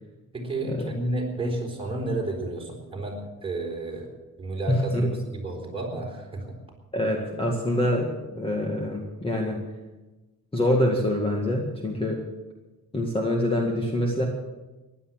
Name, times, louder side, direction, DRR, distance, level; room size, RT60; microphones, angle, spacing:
voice 1, 0.3-4.1 4.4-6.6, right 2 dB, 15° right, -1 dB, 4.3 m, -31 dB
voice 2, 4.7-5.1 6.9-9.6 10.5-12.2 12.9-14.3, left 1 dB, 15° left, 1 dB, 1.9 m, -25 dB
15.5 x 11.0 x 7.4 m, 1.1 s
cardioid pair, 140°, 33 cm